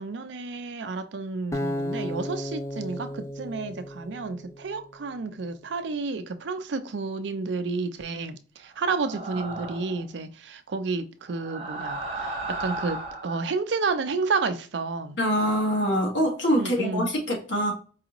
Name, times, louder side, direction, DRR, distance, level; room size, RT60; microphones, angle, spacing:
voice 1, 0.0-13.0 13.2-15.2 16.6-17.1, right 4 dB, 70° right, 0.5 m, -31 dB
Acoustic guitar, 1.5-4.7, left 1 dB, 15° left, 0.3 m, -34 dB
sound 1, 8.8-10.0 11.3-13.4, right 2 dB, 35° right, 1.0 m, -35 dB
voice 2, 15.2-17.7, equal, 80° left, 1.5 m, -24 dB
4.7 x 2.5 x 2.9 m
head